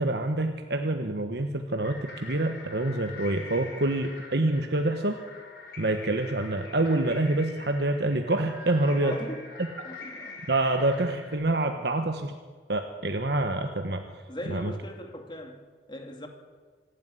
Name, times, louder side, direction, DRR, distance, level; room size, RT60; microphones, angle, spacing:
voice 1, 0.0-5.2 5.8-9.2 10.5-12.3 12.7-14.0 14.5-14.7, right 2 dB, 65° right, 1.3 m, -26 dB
sound 1, 1.8-11.4, left 3 dB, 65° left, 5.1 m, -45 dB
voice 2, 9.0-9.5 9.8-10.4 14.3-16.3, left 1 dB, 25° left, 2.4 m, -40 dB
25.5 x 11.5 x 9.8 m
head